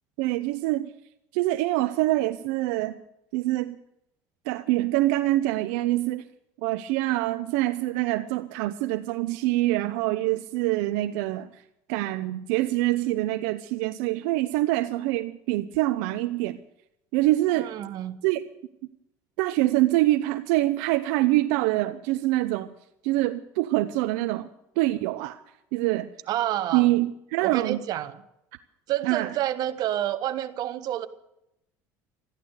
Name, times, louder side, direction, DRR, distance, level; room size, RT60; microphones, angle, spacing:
voice 1, 0.2-0.9 1.3-3.0 3.3-3.8 4.5-6.3 6.6-11.5 11.9-16.6 17.1-17.7 18.2-18.4 19.4-22.7 23.0-24.5 24.8-25.4 25.7-26.1 26.7-27.8 29.0-29.3, right 17 dB, 80° right, 10 dB, 0.8 m, -25 dB
voice 2, 17.5-18.2 26.3-26.9 27.4-28.2 28.9-31.1, right 12 dB, 55° right, 10 dB, 1.4 m, -29 dB
14.0 x 11.0 x 8.2 m, 0.81 s
supercardioid pair, 120°, 8 cm